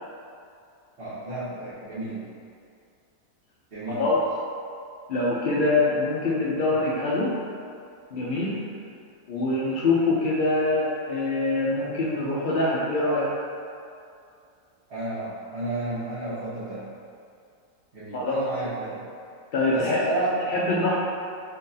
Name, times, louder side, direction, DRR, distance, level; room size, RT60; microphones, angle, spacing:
voice 1, 1.0-2.3 3.7-4.1 14.9-16.9 17.9-19.0 19.7-20.3 20.6-20.7, right 2 dB, 50° right, -13 dB, 1.3 m, -31 dB
voice 2, 3.9-4.2 5.1-7.4 8.1-8.6 9.3-13.3 18.1-18.5 19.5-20.0 20.5-21.0, left 2 dB, 75° left, -6 dB, 0.4 m, -24 dB
4.3 x 3.7 x 2.7 m, 2.4 s
omnidirectional pair, 1.5 m